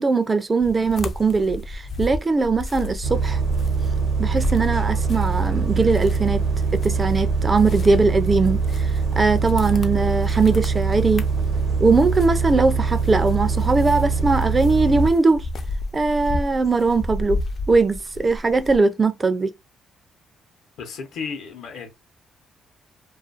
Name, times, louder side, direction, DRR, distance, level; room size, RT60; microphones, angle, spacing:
voice 1, 0.0-3.4 4.2-6.4 6.7-8.9 9.2-11.3 11.8-15.4 15.9-17.4 17.7-19.5, right 3 dB, 30° right, 0.4 m, -20 dB
sound 1, 0.6-5.5 5.8-18.8, left 2 dB, 50° left, 0.4 m, -33 dB
Bus, 3.0-15.1, right 4 dB, 75° right, 0.8 m, -23 dB
voice 2, 20.8-21.9, left 5 dB, 75° left, 0.7 m, -33 dB
2.4 x 2.3 x 2.4 m
cardioid pair, 90°, 0 cm